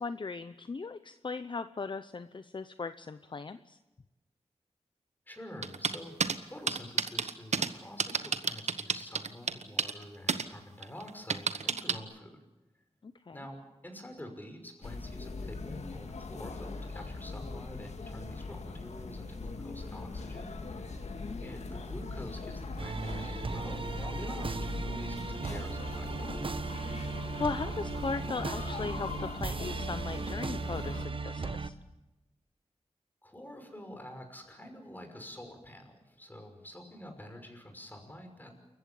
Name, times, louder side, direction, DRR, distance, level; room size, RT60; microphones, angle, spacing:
voice 1, 0.0-3.8 13.0-13.4 21.0-21.4 27.0-27.1 27.4-31.7, left 4 dB, 45° left, 11 dB, 0.7 m, -38 dB
voice 2, 5.3-6.2 6.5-12.4 13.3-13.6 13.8-26.3 33.2-38.6, left 1 dB, 15° left, 4 dB, 5.8 m, -47 dB
sound 1, 5.6-6.4 6.7-7.7 8.0-10.0 10.3-10.4 10.8-11.9, right 5 dB, 85° right, 1.2 m, -29 dB
sound 2, 14.8-31.1, left 3 dB, 80° left, 2.0 m, -40 dB
sound 3, 22.8-31.7, right 4 dB, 50° right, 1.1 m, -37 dB
28.5 x 15.0 x 8.6 m, 1.1 s
wide cardioid pair, 85°, 11 cm